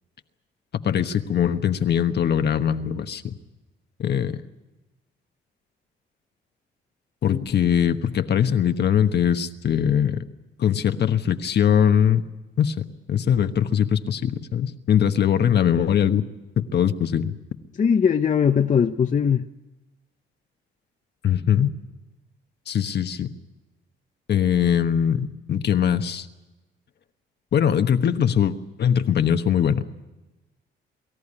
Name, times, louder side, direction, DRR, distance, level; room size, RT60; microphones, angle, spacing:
voice 1, 0.8-3.3 4.0-4.4 7.2-10.2 10.6-12.2 12.6-16.2 16.6-17.3 21.2-21.7 22.7-23.3 24.3-26.3 27.5-29.9, left 9 dB, 55° left, 8 dB, 1.2 m, -21 dB
voice 2, 17.8-19.4, left 7 dB, 40° left, 6 dB, 0.8 m, -20 dB
24.0 x 14.0 x 9.9 m, 1.1 s
cardioid pair, 90°, 20 cm